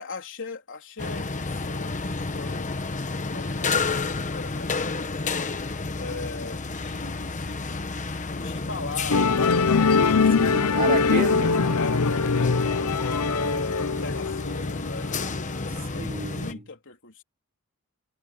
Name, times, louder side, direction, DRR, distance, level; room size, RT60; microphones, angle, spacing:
voice 1, 0.0-2.0 2.3-2.7 3.3-5.4 5.9-7.8 8.1-10.3 11.8-17.2, left 3 dB, 60° left, 3.8 m, -39 dB
sound 1, 1.0-16.5, left 3 dB, 35° left, 1.1 m, -31 dB
Musical instrument, 9.1-15.7, left 4 dB, 85° left, 0.7 m, -23 dB
voice 2, 10.4-11.7 15.9-16.6, right 2 dB, 45° right, 2.7 m, -31 dB
head